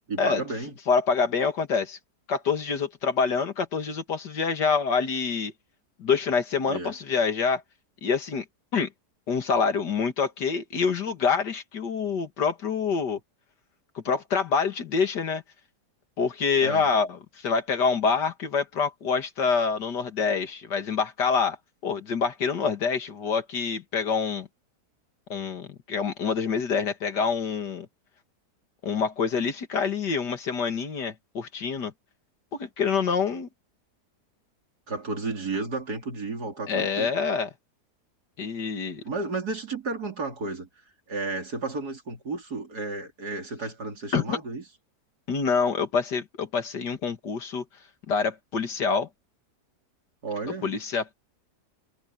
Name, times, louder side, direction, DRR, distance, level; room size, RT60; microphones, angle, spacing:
voice 1, 0.0-0.7 6.7-6.9 16.6-16.9 34.9-37.1 39.0-40.7 41.1-44.6 50.2-50.7, right 3 dB, 70° right, 4.1 m, -32 dB
voice 2, 0.9-2.0 2.3-5.5 6.0-7.6 8.0-8.4 8.7-8.9 9.3-13.2 13.9-15.4 16.2-21.6 21.8-24.5 25.3-27.9 28.8-31.9 32.5-33.5 36.7-37.5 38.4-39.0 44.1-44.4 45.3-47.6 48.1-49.1 50.6-51.1, left 5 dB, 85° left, 2.6 m, -26 dB
omnidirectional pair, 1.8 m